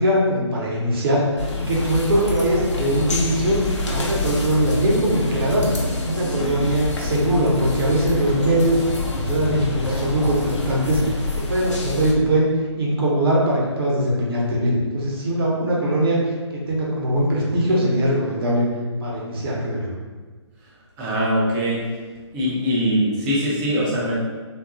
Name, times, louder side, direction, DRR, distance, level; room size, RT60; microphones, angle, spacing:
voice 1, 0.0-5.6 6.0-8.8 9.1-12.5 12.8-16.2 16.5-18.7 19.0-19.9, right 1 dB, 50° right, -4 dB, 0.8 m, -21 dB
sound 1, 1.4-12.1, left 2 dB, 75° left, 0.6 m, -26 dB
voice 2, 21.0-21.8 22.3-24.1, equal, 10° right, -6 dB, 0.3 m, -22 dB
2.8 x 2.3 x 2.4 m, 1.4 s
figure-of-eight pair, 150°, 15 cm